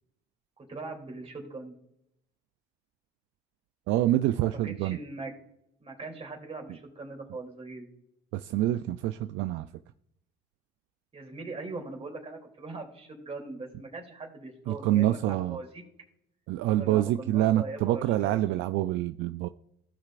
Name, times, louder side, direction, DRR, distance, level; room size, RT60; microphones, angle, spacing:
voice 1, 0.6-1.7 4.3-5.3 5.8-7.9 11.1-15.8 16.7-18.4, right 3 dB, 30° right, 2.9 m, -41 dB
voice 2, 3.9-5.0 8.3-9.7 14.7-15.6 16.5-19.5, right 14 dB, 70° right, 0.4 m, -26 dB
15.5 x 6.6 x 2.5 m
supercardioid pair, 80°, 20 cm